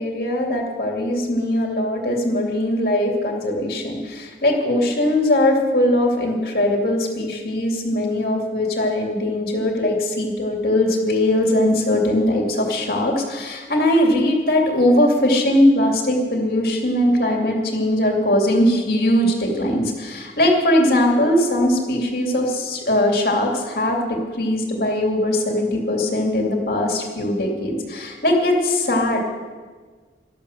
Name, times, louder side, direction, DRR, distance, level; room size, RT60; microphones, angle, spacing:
voice 1, 0.0-29.2, left 1 dB, 55° left, 1 dB, 2.6 m, -20 dB
13.0 x 12.5 x 6.7 m, 1.5 s
head